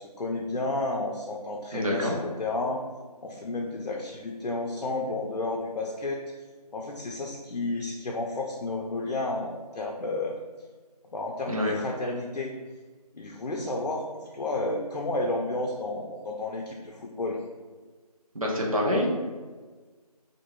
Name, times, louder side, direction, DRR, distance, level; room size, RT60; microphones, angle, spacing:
voice 1, 0.0-2.8 3.2-6.2 6.7-10.4 11.1-12.5 13.1-17.4, left 2 dB, 80° left, 0 dB, 0.5 m, -31 dB
voice 2, 1.7-2.1 11.5-11.7 18.3-19.1, left 1 dB, 60° right, -2 dB, 0.7 m, -26 dB
2.6 x 2.6 x 2.9 m, 1.4 s
figure-of-eight pair, 175°, 20 cm